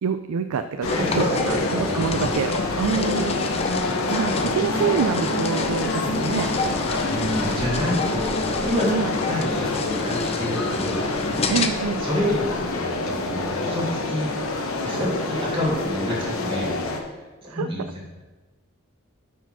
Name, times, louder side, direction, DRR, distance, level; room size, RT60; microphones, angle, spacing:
voice 1, 0.0-3.4 3.8-6.5 8.8-9.1 11.5-12.0 17.5-17.7, right 6 dB, 80° right, 9 dB, 0.4 m, -26 dB
sound 1, 0.8-17.0, left 2 dB, 70° left, 1.1 m, -27 dB
sound 2, 0.8-11.7, left 3 dB, 30° left, 0.5 m, -29 dB
voice 2, 0.9-1.6 2.9-3.2 4.1-4.3 7.1-8.9 9.3-11.0 12.0-14.3 14.8-16.7 17.1-17.2 17.4-17.8, left 1 dB, 25° right, -4 dB, 2.5 m, -28 dB
9.0 x 4.8 x 6.0 m, 1.2 s
head